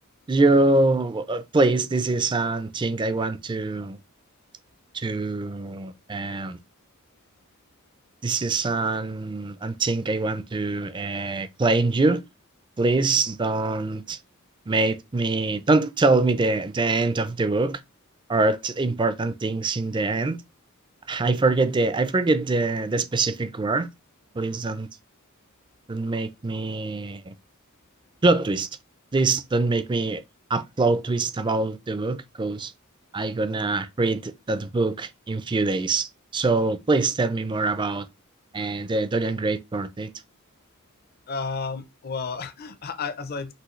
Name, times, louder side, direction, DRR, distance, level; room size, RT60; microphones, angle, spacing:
voice 1, 0.3-4.0 4.9-6.6 8.2-12.2 12.8-14.2 14.7-17.8 18.3-20.4 21.1-23.9 24.3-24.9 25.9-27.3 28.2-28.7 29.1-30.2 30.5-32.7 33.1-38.1 38.5-40.1, right 3 dB, 20° right, 0.4 m, -24 dB
voice 2, 41.3-43.5, left 4 dB, 45° left, 0.6 m, -32 dB
6.0 x 2.7 x 3.1 m
head